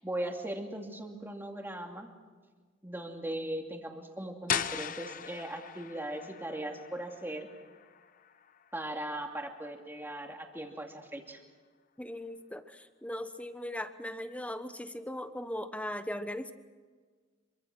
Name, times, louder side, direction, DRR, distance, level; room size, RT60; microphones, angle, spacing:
voice 1, 0.0-2.1 2.8-7.5 8.7-11.4, right 1 dB, 10° right, 2 dB, 2.7 m, -39 dB
sound 1, 4.5-10.1, left 8 dB, 45° left, 0.8 m, -39 dB
voice 2, 12.0-16.5, left 1 dB, 5° left, 10 dB, 1.1 m, -39 dB
26.5 x 24.0 x 6.2 m, 1.5 s
head